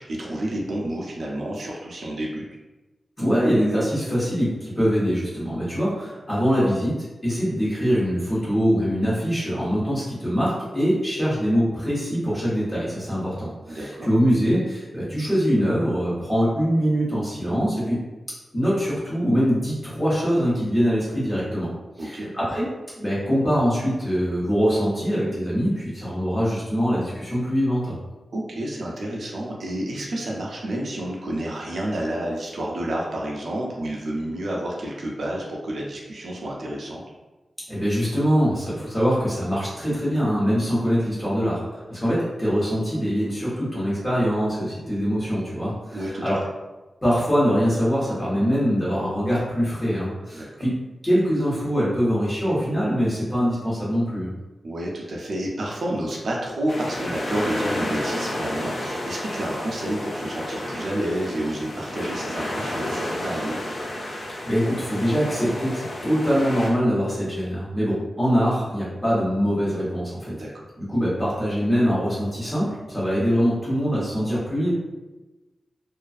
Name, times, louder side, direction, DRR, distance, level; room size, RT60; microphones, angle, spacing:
voice 1, 0.0-2.4 13.7-14.1 22.0-22.3 28.3-37.0 45.9-46.4 50.3-50.5 54.6-63.6 70.3-70.6, right 1 dB, 60° right, -2 dB, 0.4 m, -30 dB
voice 2, 3.2-18.0 18.5-21.7 22.0-22.7 23.0-28.0 37.7-46.4 47.0-50.7 51.0-54.3 64.5-70.3 70.8-74.7, equal, 20° left, -9 dB, 1.0 m, -23 dB
sound 1, 56.7-66.7, left 1 dB, 60° left, 0.4 m, -31 dB
2.4 x 2.3 x 2.4 m, 1.1 s
wide cardioid pair, 175°, 0 cm